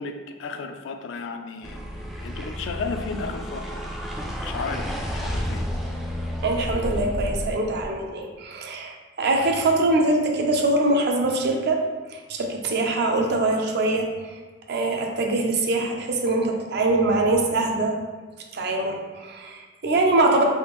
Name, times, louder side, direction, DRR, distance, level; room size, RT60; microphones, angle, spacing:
voice 1, 0.0-1.8 2.2-3.8 4.2-5.7 9.3-9.5, left 4 dB, 75° left, 6 dB, 0.3 m, -34 dB
sound 1, 1.6-7.9, equal, ahead, 0.3 m, -31 dB
voice 2, 6.4-11.8 12.1-14.4 14.7-18.0 18.5-20.4, right 2 dB, 60° right, 2 dB, 0.5 m, -23 dB
3.5 x 2.4 x 3.0 m, 1.4 s
head